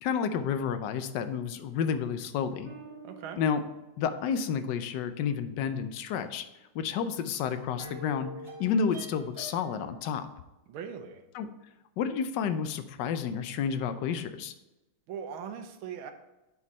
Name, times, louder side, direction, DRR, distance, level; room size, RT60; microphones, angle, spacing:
voice 1, 0.0-2.7 3.4-3.6 4.0-6.5 6.7-8.3 8.6-10.3 11.3-11.5 12.0-14.5, left 7 dB, 70° left, 10 dB, 1.1 m, -30 dB
sound 1, 2.6-4.6 7.0-7.1 7.4-9.9, right 1 dB, 15° right, 1.1 m, -47 dB
voice 2, 3.0-3.4 10.7-11.2 15.1-16.1, right 7 dB, 75° right, 6 dB, 1.6 m, -40 dB
9.7 x 4.7 x 4.1 m, 1.0 s
omnidirectional pair, 2.4 m